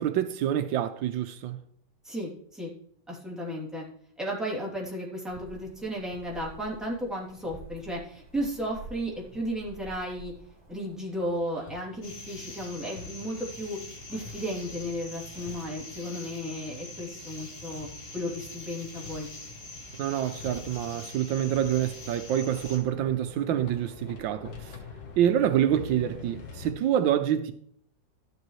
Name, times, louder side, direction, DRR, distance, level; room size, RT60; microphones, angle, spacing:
voice 1, 0.0-1.6 20.0-24.8 25.2-27.5, right 10 dB, 85° right, 1.4 m, -27 dB
voice 2, 2.0-2.7 3.1-3.9 4.2-10.3 10.7-13.8 14.1-17.9 18.1-19.3, equal, ahead, 2.7 m, -34 dB
sound 1, 5.3-11.0, right 2 dB, 45° right, 2.7 m, -49 dB
Hammer, 11.0-26.7, left 5 dB, 75° left, 1.8 m, -47 dB
sound 2, 12.0-22.8, left 2 dB, 30° left, 1.8 m, -44 dB
12.5 x 7.6 x 3.1 m
omnidirectional pair, 2.1 m